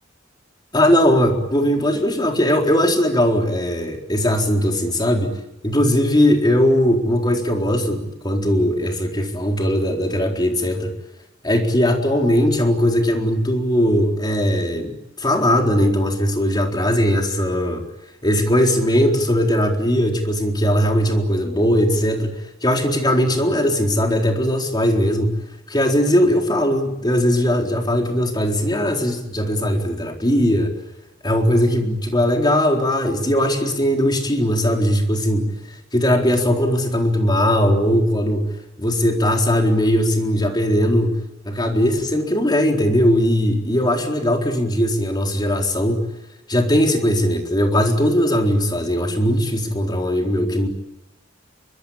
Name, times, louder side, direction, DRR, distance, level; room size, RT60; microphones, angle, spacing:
voice 1, 0.7-5.4 5.6-10.9 11.4-17.8 18.2-25.4 25.7-30.7 31.2-38.4 38.8-41.2 41.5-46.1 46.5-50.7, equal, 20° left, 2 dB, 4.1 m, -19 dB
25.5 x 23.5 x 8.9 m, 0.85 s
head